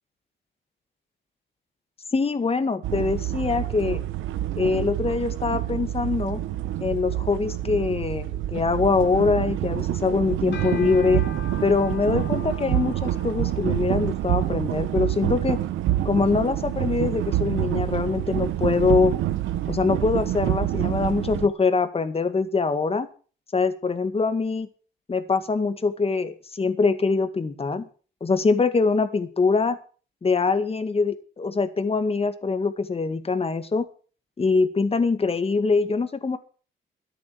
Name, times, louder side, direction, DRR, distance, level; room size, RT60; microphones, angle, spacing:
voice 1, 2.1-4.0 4.5-6.4 6.8-11.2 11.6-15.6 16.0-19.1 19.7-23.1 23.5-24.7 25.1-27.9 28.2-29.8 30.2-33.9 34.4-36.4, left 4 dB, 30° left, 10 dB, 2.0 m, -23 dB
sound 1, 2.8-21.5, right 13 dB, 85° right, 1.1 m, -27 dB
sound 2, 10.4-19.7, left 7 dB, 65° left, 3.0 m, -45 dB
13.5 x 10.5 x 6.3 m, 0.39 s
cardioid pair, 90°, 20 cm